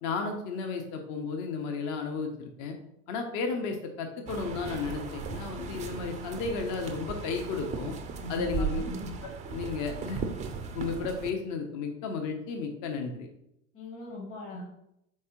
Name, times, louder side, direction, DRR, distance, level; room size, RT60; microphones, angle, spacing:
voice 1, 0.0-2.8 3.1-7.9 8.3-8.8 9.5-10.2 10.7-13.3, left 4 dB, 45° left, 4 dB, 0.8 m, -33 dB
sound 1, 4.3-11.3, right 5 dB, 20° right, 0.4 m, -37 dB
voice 2, 8.2-9.2 13.7-14.6, left 1 dB, 30° left, -4 dB, 1.2 m, -40 dB
4.6 x 3.6 x 3.0 m, 0.80 s
hypercardioid pair, 90°, 42 cm